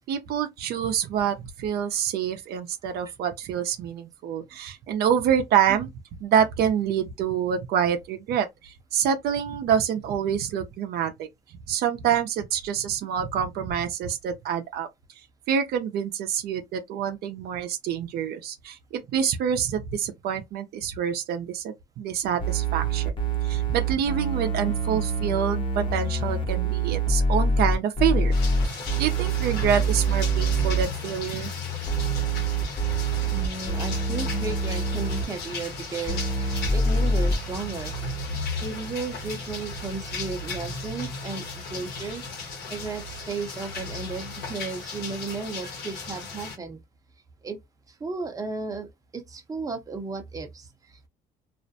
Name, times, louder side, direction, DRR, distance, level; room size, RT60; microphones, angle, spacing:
voice 1, 0.1-5.9 6.2-11.3 11.7-14.9 15.5-23.1 23.4-28.3 28.6-31.5, right 8 dB, 70° right, 0.5 m, -26 dB
sound 1, 22.4-30.8 31.9-35.2 36.1-37.4, right 3 dB, 30° left, 0.9 m, -25 dB
sound 2, 28.3-46.6, left 3 dB, 70° left, 1.0 m, -35 dB
voice 2, 33.0-38.0 38.6-42.2 42.7-46.8 47.4-47.6 47.9-51.1, right 4 dB, 20° right, 0.7 m, -34 dB
2.4 x 2.1 x 2.7 m
cardioid pair, 110°, 17 cm